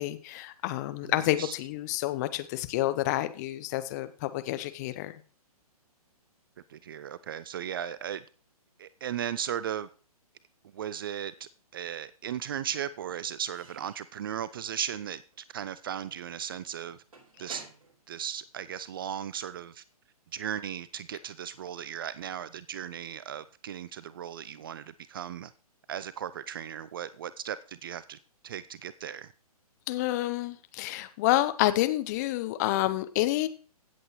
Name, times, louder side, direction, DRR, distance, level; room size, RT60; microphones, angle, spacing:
voice 1, 0.0-5.2 29.9-33.5, left 16 dB, 25° left, 0.7 m, -29 dB
voice 2, 1.0-1.5 6.7-8.2 8.8-9.9 10.7-17.0 17.4-17.6 18.1-19.8 20.3-25.5 25.9-28.2 28.4-29.3, right 9 dB, 35° right, 0.4 m, -36 dB
Slam / Squeak / Wood, 11.6-12.1 12.4-19.1, right 3 dB, 65° right, 4.6 m, -54 dB
16.0 x 7.9 x 3.1 m
figure-of-eight pair, 130°, 20 cm